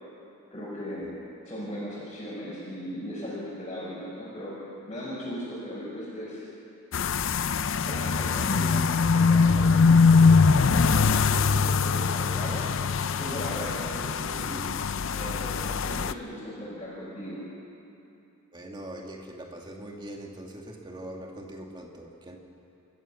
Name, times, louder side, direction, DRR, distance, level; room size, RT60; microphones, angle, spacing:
voice 1, 0.5-1.1 1.4-4.6 4.9-6.4 7.9-12.7 13.2-14.6 15.1-17.4, equal, 20° left, -10 dB, 6.2 m, -37 dB
sound 1, 6.9-16.1, left 5 dB, 60° left, 0.5 m, -22 dB
voice 2, 18.5-22.4, right 1 dB, 20° right, 0 dB, 2.1 m, -42 dB
28.5 x 14.0 x 7.1 m, 2.7 s
head